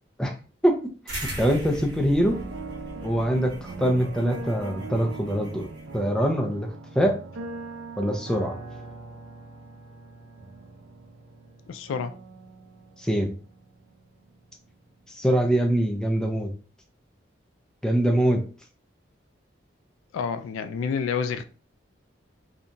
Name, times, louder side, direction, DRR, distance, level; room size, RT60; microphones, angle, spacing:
voice 1, 1.1-2.4 3.0-5.7 5.9-6.7 7.0-7.1 8.0-8.6 13.0-13.3 15.1-16.5 17.8-18.4, equal, 5° left, 0.4 m, -23 dB
sound 1, 1.1-6.0, right 1 dB, 60° right, 1.0 m, -39 dB
sound 2, 2.3-15.3 15.6-15.7, right 3 dB, 80° right, 0.4 m, -41 dB
voice 2, 11.7-12.2 20.1-21.5, left 6 dB, 90° left, 0.3 m, -29 dB
2.8 x 2.2 x 2.5 m
head